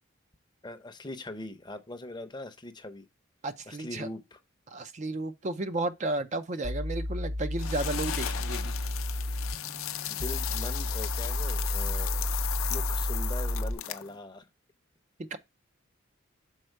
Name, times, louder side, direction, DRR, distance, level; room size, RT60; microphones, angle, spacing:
voice 1, 0.6-3.1 3.7-4.4 10.1-12.3 12.7-14.5, left 1 dB, 20° left, 0.7 m, -41 dB
voice 2, 3.4-4.1 4.7-8.7 15.3-15.4, right 2 dB, 35° right, 0.4 m, -33 dB
sound 1, 6.6-13.7, left 1 dB, 65° right, 1.1 m, -32 dB
sound 2, 7.6-14.2, left 12 dB, 85° left, 0.5 m, -35 dB
6.4 x 4.3 x 4.5 m
head